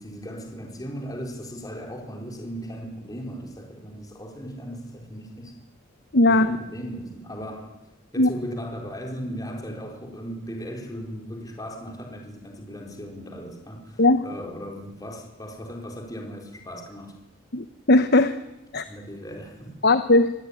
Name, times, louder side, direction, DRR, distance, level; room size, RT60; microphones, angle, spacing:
voice 1, 0.0-5.5 6.3-7.7 8.1-17.2 18.9-19.8, equal, 20° left, 4.3 m, -37 dB
voice 2, 6.1-6.6 8.2-8.3 14.0-14.2 17.5-18.4 18.7-18.8 19.8-20.3, left 2 dB, 55° left, 1.1 m, -18 dB
27.0 x 20.0 x 9.9 m
head